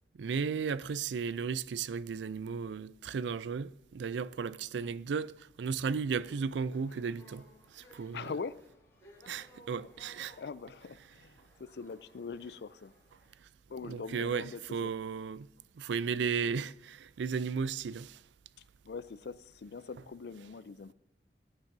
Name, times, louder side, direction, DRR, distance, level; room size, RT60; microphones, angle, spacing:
voice 1, 0.2-8.3 9.3-10.4 13.4-13.5 13.8-15.5 15.7-18.2, right 6 dB, 85° right, 0.4 m, -35 dB
sound 1, 6.1-13.3, left 1 dB, 15° left, 4.8 m, -59 dB
voice 2, 8.1-8.6 10.4-12.9 13.7-14.9 18.8-20.9, left 5 dB, 65° left, 0.4 m, -42 dB
19.0 x 8.9 x 2.7 m
head